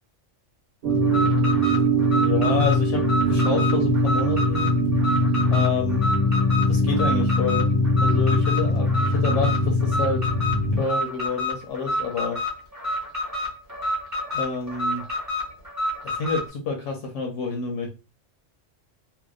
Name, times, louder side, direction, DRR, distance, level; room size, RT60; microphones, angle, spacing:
sound 1, 0.8-10.8, equal, 70° right, 1.0 m, -21 dB
Alarm, 1.0-16.5, left 1 dB, 15° right, 1.0 m, -29 dB
voice 1, 2.1-4.7 5.5-6.1 6.7-7.7 8.0-10.3 10.7-12.4 14.3-15.0 16.0-17.9, left 4 dB, 80° left, 2 dB, 0.9 m, -28 dB
2.7 x 2.1 x 2.2 m, 0.30 s
omnidirectional pair, 1.3 m